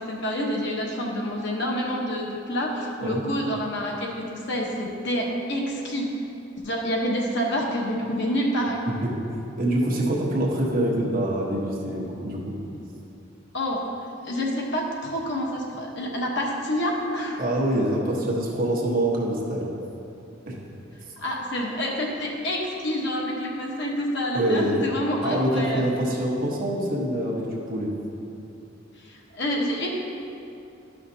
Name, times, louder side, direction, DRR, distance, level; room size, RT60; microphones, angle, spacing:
voice 1, 0.0-6.1 6.6-8.9 13.5-13.8 14.2-17.4 21.2-25.9 29.0-29.9, equal, 60° left, -2 dB, 1.1 m, -28 dB
voice 2, 9.6-12.6 17.4-19.7 20.4-20.6 24.3-24.7 25.2-27.9, right 1 dB, 45° right, -3 dB, 1.2 m, -25 dB
11.5 x 5.8 x 2.8 m, 2.7 s
head